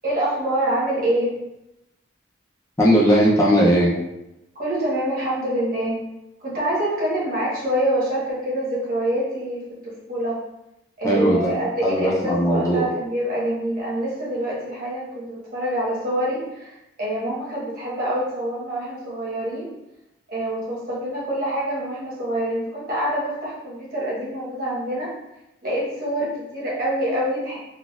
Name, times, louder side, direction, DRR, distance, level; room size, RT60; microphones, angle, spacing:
voice 1, 0.0-1.4 4.5-6.0 6.4-10.4 11.0-19.7 20.3-25.1 25.6-27.6, right 1 dB, 50° right, -7 dB, 1.3 m, -26 dB
voice 2, 2.8-3.9 11.0-11.6 11.8-12.9, equal, 15° left, -5 dB, 0.5 m, -18 dB
4.0 x 2.4 x 2.4 m, 0.90 s
head